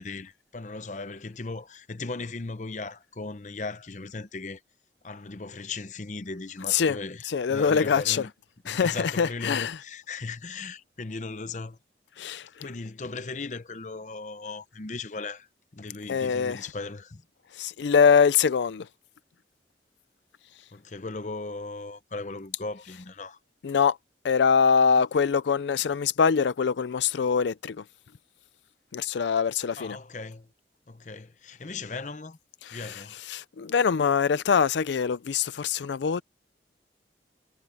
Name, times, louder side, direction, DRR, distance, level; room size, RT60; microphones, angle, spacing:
voice 1, 0.0-4.6 5.0-8.3 8.6-11.8 12.6-15.5 15.7-17.2 20.7-23.4 29.8-30.5 30.9-32.4 32.7-33.2, left 3 dB, 40° left, 0.7 m, -37 dB
voice 2, 7.2-8.3 8.7-9.8 12.2-12.7 16.1-16.6 17.5-18.9 23.6-24.0 24.2-27.8 28.9-30.0 32.6-36.2, left 6 dB, 85° left, 0.4 m, -24 dB
head